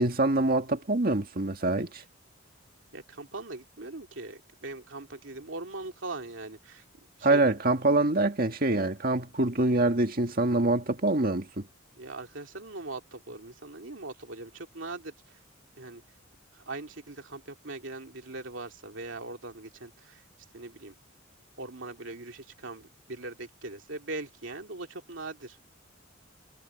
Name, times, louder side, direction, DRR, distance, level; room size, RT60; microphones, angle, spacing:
voice 1, 0.0-2.0 7.2-11.6, right 2 dB, 45° right, 1.8 m, -25 dB
voice 2, 2.9-6.8 7.3-7.4 12.0-15.1 15.8-16.0 16.7-19.9 20.5-20.9 21.6-25.5, right 2 dB, 65° right, 2.8 m, -40 dB
head